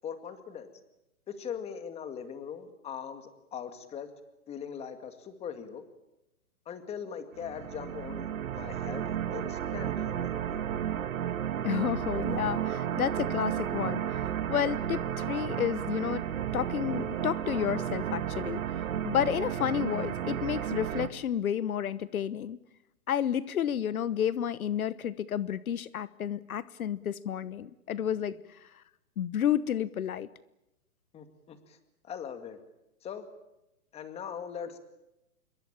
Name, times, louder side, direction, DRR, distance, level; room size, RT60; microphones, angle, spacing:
voice 1, 0.0-0.8 1.3-4.1 4.5-5.8 6.7-10.6 28.3-28.4 31.1-31.8 32.0-32.6 33.0-33.3 33.9-34.8, left 7 dB, 15° left, 9 dB, 2.1 m, -41 dB
sound 1, 7.4-21.1, right 10 dB, 65° right, 2.4 m, -33 dB
voice 2, 11.6-14.2 14.5-16.2 16.5-22.6 23.1-28.8 29.2-30.3, left 9 dB, 75° left, 17 dB, 1.2 m, -31 dB
26.5 x 22.5 x 8.9 m, 0.91 s
hypercardioid pair, 150°, 43 cm